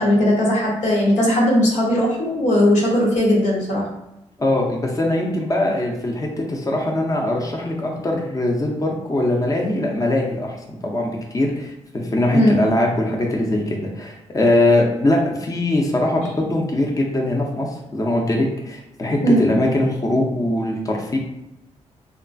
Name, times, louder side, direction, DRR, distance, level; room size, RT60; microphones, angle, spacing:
voice 1, 0.0-3.9 12.3-12.6 19.2-19.5, equal, 80° left, -4 dB, 0.9 m, -18 dB
voice 2, 4.4-21.2, left 1 dB, 30° left, -1 dB, 0.6 m, -21 dB
2.9 x 2.3 x 2.5 m, 0.91 s
cardioid pair, 60°, 12 cm